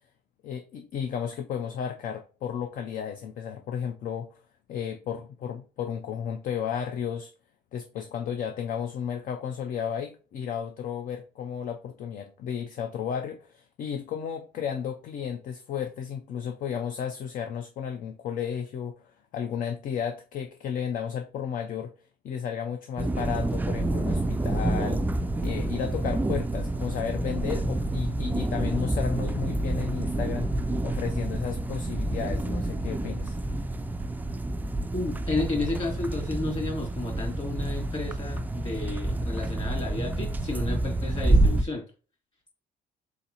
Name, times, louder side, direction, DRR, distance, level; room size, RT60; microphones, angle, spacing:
voice 1, 0.4-4.3 4.7-7.3 7.7-19.0 19.3-21.9 22.2-30.5 30.8-33.4, left 8 dB, 55° left, 0.5 m, -33 dB
sound 1, 23.0-41.6, right 2 dB, 10° right, 0.3 m, -28 dB
voice 2, 34.9-41.8, left 2 dB, 35° left, 2.3 m, -32 dB
4.0 x 4.0 x 2.9 m
cardioid pair, 110°, 17 cm